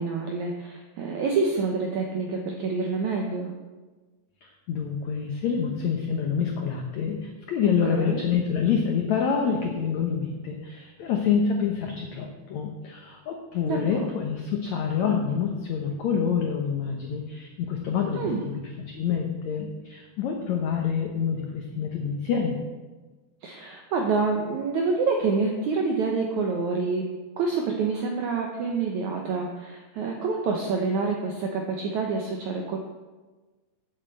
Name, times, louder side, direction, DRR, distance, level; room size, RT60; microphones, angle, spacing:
voice 1, 0.0-3.5 7.9-8.2 13.6-14.0 18.1-18.4 23.4-27.1 27.4-32.8, right 4 dB, 80° right, 1 dB, 1.7 m, -27 dB
voice 2, 4.4-18.6 18.9-22.6, left 6 dB, 85° left, 2 dB, 1.6 m, -27 dB
8.1 x 7.5 x 7.6 m, 1.3 s
omnidirectional pair, 4.6 m